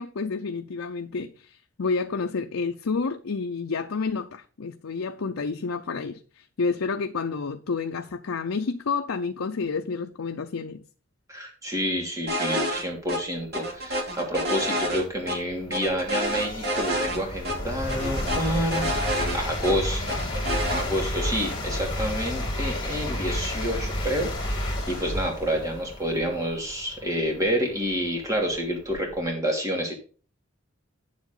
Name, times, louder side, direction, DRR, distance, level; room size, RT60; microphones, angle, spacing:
voice 1, 0.0-10.8, left 4 dB, 75° left, 0.6 m, -30 dB
voice 2, 11.3-20.2 20.7-29.9, equal, 15° right, 2.7 m, -29 dB
sound 1, 12.3-12.8 13.1-13.2 13.5-15.4 15.7-17.2 17.4-17.6 17.9-19.7 20.1-20.8, equal, 50° right, 2.6 m, -28 dB
sound 2, 13.8-13.9 14.5-29.3, left 1 dB, 20° left, 3.1 m, -32 dB
9.3 x 7.6 x 3.8 m
head